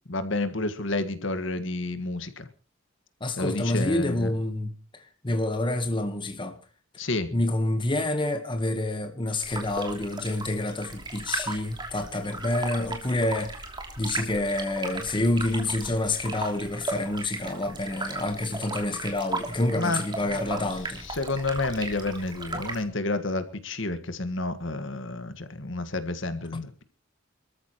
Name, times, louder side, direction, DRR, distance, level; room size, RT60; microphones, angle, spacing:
voice 1, 0.1-2.5 3.4-4.3 7.0-7.3 19.7-20.4 21.0-26.8, left 2 dB, 65° left, 1.7 m, -30 dB
voice 2, 3.2-6.6 7.3-13.5 14.0-21.0, left 1 dB, 25° left, 1.3 m, -28 dB
sound 1, 9.4-22.8, right 3 dB, 20° right, 3.0 m, -36 dB
25.0 x 14.0 x 3.1 m
head